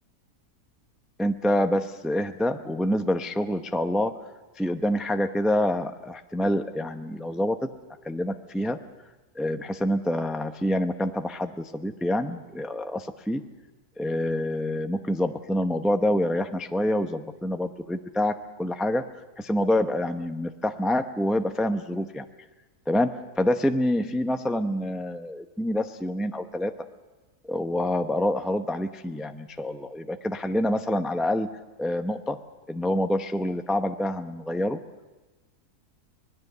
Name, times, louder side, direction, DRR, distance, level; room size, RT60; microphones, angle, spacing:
voice 1, 1.2-4.2 4.6-7.6 8.0-8.8 9.4-13.4 14.0-19.0 19.4-22.2 22.9-26.7 27.5-31.5 31.8-32.4 32.7-34.8, left 1 dB, ahead, 7 dB, 0.4 m, -27 dB
25.0 x 20.0 x 6.8 m, 1.2 s
omnidirectional pair, 1.6 m